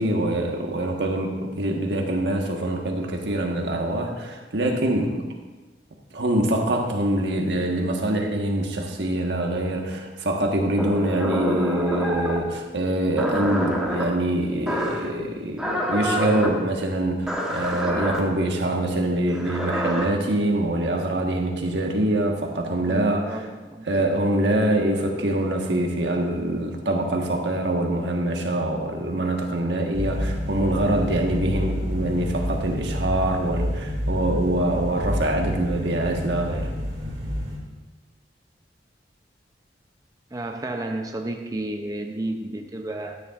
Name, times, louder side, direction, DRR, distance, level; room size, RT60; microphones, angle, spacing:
voice 1, 0.0-5.2 6.1-23.4 23.9-36.7, right 1 dB, 80° right, 1 dB, 1.3 m, -24 dB
sound 1, 10.8-12.5 13.2-14.0 14.7-15.1 15.6-16.5 17.3-18.2 19.3-20.0, equal, 5° right, 1.0 m, -27 dB
voice 2, 22.8-23.8 40.3-43.2, right 1 dB, 20° right, 4 dB, 0.5 m, -32 dB
sound 2, 29.9-37.6, equal, 40° right, 2.2 m, -29 dB
12.0 x 10.0 x 2.4 m, 1.2 s
head